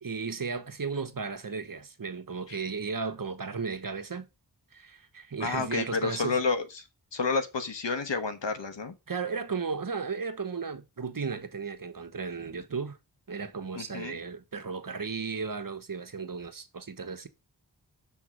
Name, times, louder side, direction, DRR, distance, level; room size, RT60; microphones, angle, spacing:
voice 1, 0.0-4.3 4.7-6.4 9.1-13.0 13.3-17.3, right 5 dB, 50° right, 1.2 m, -35 dB
voice 2, 5.4-6.8 7.1-8.9 13.7-14.2, left 4 dB, 85° left, 1.3 m, -30 dB
7.2 x 3.6 x 6.2 m
wide cardioid pair, 55°, 42 cm